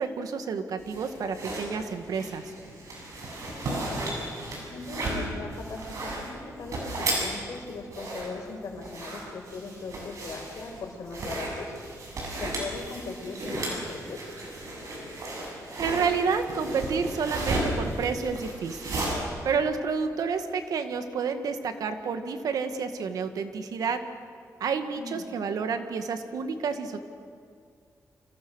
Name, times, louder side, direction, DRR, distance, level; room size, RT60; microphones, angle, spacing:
voice 1, 0.0-2.4 15.8-19.0 19.4-24.0 24.6-27.0, right 5 dB, 75° right, 8 dB, 1.9 m, -29 dB
sound 1, 0.8-19.1, right 2 dB, 60° right, 7.4 m, -34 dB
voice 2, 3.3-4.1 4.4-11.7 12.4-14.3 25.0-25.2, left 3 dB, 65° left, 2 dB, 5.0 m, -39 dB
29.0 x 26.0 x 6.4 m, 2.2 s
wide cardioid pair, 155°, 6 cm